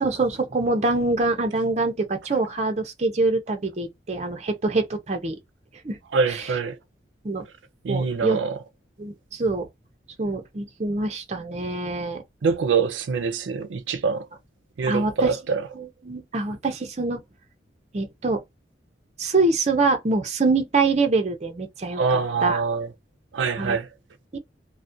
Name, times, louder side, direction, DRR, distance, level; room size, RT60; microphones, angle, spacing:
voice 1, 0.0-5.4 5.8-6.0 6.3-6.5 7.2-7.4 7.9-8.4 9.0-9.7 10.2-12.2 14.9-15.3 15.8-17.2 17.9-18.4 19.2-22.0 22.4-22.6 23.6-23.8 24.3-24.4, right 3 dB, 35° right, 0.5 m, -24 dB
voice 2, 6.1-6.8 7.8-8.6 12.4-14.3 14.8-15.7 21.9-22.9 23.3-23.9, right 5 dB, 90° right, 0.4 m, -24 dB
2.3 x 2.1 x 2.6 m
head